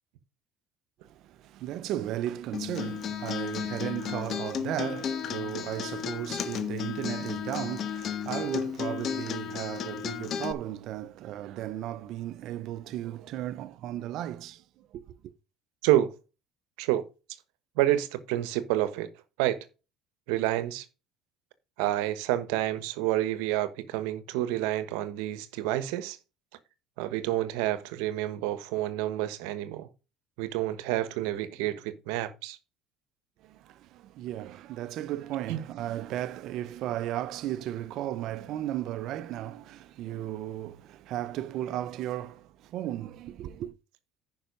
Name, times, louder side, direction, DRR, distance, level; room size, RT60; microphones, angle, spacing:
voice 1, 1.0-15.3 33.4-43.7, right 12 dB, 60° right, 0.8 m, -35 dB
Acoustic guitar, 2.5-10.5, left 8 dB, 45° left, 1.3 m, -34 dB
voice 2, 15.8-16.1 16.8-17.0 17.8-19.1 19.4-19.6 20.3-20.8 21.8-26.2 27.0-29.9 30.4-32.6 35.5-35.6, right 14 dB, 80° right, 1.2 m, -28 dB
10.0 x 5.7 x 5.3 m
supercardioid pair, 110°, 0 cm